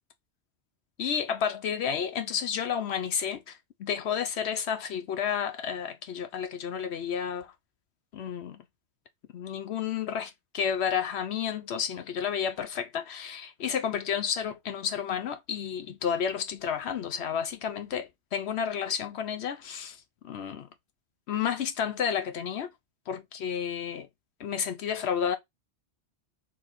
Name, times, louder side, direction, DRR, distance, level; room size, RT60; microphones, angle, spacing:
voice 1, 1.0-7.5 8.1-8.6 9.3-20.0 20.2-20.7 21.3-22.7 23.1-24.1 24.4-25.4, left 8 dB, 75° left, 0.9 m, -31 dB
4.3 x 3.1 x 4.0 m
omnidirectional pair, 1.1 m